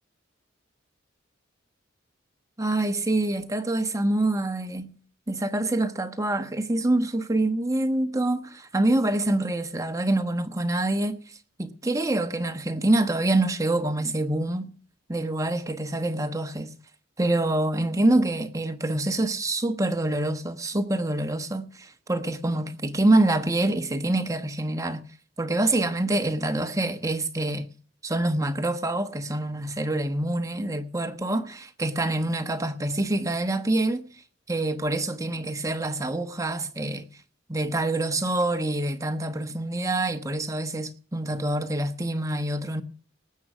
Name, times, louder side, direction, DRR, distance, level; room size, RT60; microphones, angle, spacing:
voice 1, 2.6-5.0 5.3-14.7 15.1-16.7 17.2-25.0 25.4-27.7 28.0-34.1 34.5-37.1 37.5-42.8, right 2 dB, 15° right, 1.1 m, -26 dB
19.0 x 7.9 x 6.1 m
head